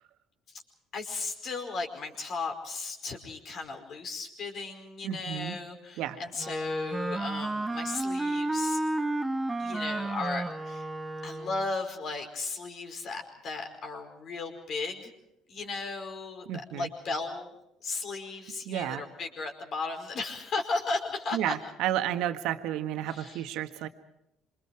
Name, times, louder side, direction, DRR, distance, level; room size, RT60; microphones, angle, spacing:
voice 1, 0.9-8.8 9.6-10.9 11.2-15.1 15.5-17.5 17.8-21.5 23.0-23.5, left 3 dB, 50° left, 4 dB, 5.0 m, -35 dB
voice 2, 5.0-5.6 6.0-6.2 16.5-16.9 18.6-19.0 21.3-23.9, right 12 dB, 65° right, 8 dB, 1.6 m, -31 dB
Wind instrument woodwind instrument, 6.4-11.7, right 2 dB, 15° right, 1.5 m, -32 dB
27.0 x 25.5 x 4.8 m, 0.83 s
hypercardioid pair, 55°, 0 cm